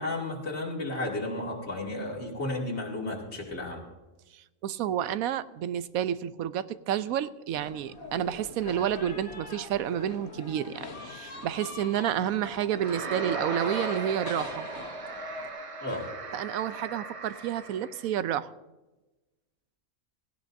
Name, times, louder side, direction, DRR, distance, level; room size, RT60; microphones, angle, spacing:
voice 1, 0.0-3.8 15.8-16.1, left 2 dB, 50° left, -2 dB, 2.8 m, -33 dB
voice 2, 4.3-14.7 16.3-18.5, right 10 dB, 80° right, 14 dB, 1.0 m, -30 dB
sound 1, 7.5-15.5, left 3 dB, 80° left, 2.1 m, -42 dB
sound 2, 12.7-18.1, right 4 dB, 35° right, 0.5 m, -37 dB
17.0 x 17.0 x 2.7 m, 1.1 s
omnidirectional pair, 1.5 m